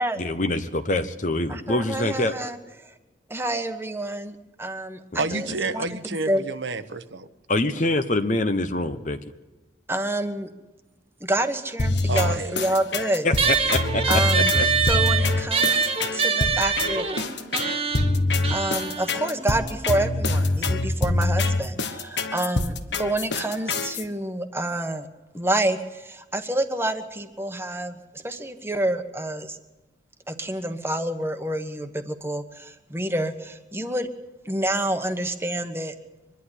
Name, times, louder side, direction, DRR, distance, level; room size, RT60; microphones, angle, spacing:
voice 1, 0.2-2.4 7.5-9.2 13.2-14.2 14.6-14.7, left 2 dB, 40° left, 9 dB, 1.0 m, -25 dB
voice 2, 1.5-2.6 3.3-5.5 5.7-5.8 6.3-6.4 9.9-10.5 11.2-13.3 14.1-14.5 14.9-15.7 16.4-17.1 18.5-25.1 25.3-28.0 28.2-29.6 30.3-34.1 34.4-35.9, right 1 dB, 15° right, 7 dB, 1.2 m, -28 dB
voice 3, 5.2-7.3 12.1-12.7, right 3 dB, 75° right, 9 dB, 1.1 m, -29 dB
sound 1, 11.8-24.0, left 2 dB, 70° left, 1.4 m, -25 dB
sound 2, 13.4-20.2, right 5 dB, 30° right, 1.6 m, -25 dB
24.0 x 11.5 x 9.8 m, 1.1 s
head